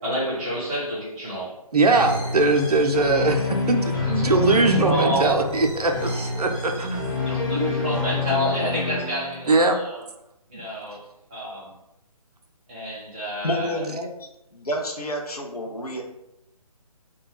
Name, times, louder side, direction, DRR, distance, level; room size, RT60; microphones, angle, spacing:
voice 1, 0.0-1.5 4.0-5.4 5.8-6.2 6.7-6.9 7.2-10.1 10.5-11.0 11.3-11.7 12.7-13.8, equal, 10° right, -9 dB, 0.7 m, -29 dB
voice 2, 1.7-7.0 9.5-9.8 10.5-10.6, right 2 dB, 80° right, 5 dB, 0.4 m, -21 dB
sound 1, 1.9-9.6, left 3 dB, 30° left, 0.6 m, -27 dB
voice 3, 13.4-14.1 14.5-16.0, equal, 75° left, 1 dB, 0.6 m, -29 dB
2.2 x 2.2 x 3.2 m, 0.85 s
figure-of-eight pair, 150°, 19 cm